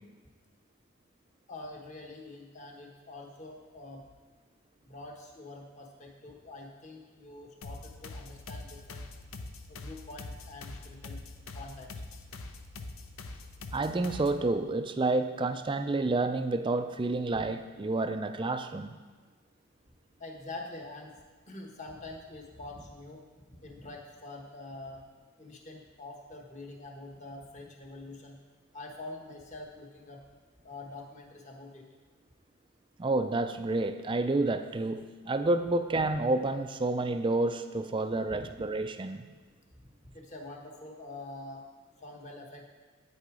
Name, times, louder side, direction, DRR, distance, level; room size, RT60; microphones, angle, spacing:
voice 1, 1.5-4.1 4.8-9.1 9.7-11.2 11.5-12.0 17.3-17.5 20.2-21.2 21.5-23.2 23.5-25.0 25.4-28.4 28.7-30.2 30.6-31.8 38.3-38.5 40.0-41.7 42.0-42.6, left 2 dB, 35° left, 1 dB, 1.2 m, -45 dB
sound 1, 7.6-14.5, left 2 dB, 70° left, 0.6 m, -44 dB
voice 2, 13.7-18.9 33.0-39.2, right 2 dB, 20° right, 9 dB, 0.3 m, -29 dB
8.7 x 6.6 x 4.9 m, 1.4 s
head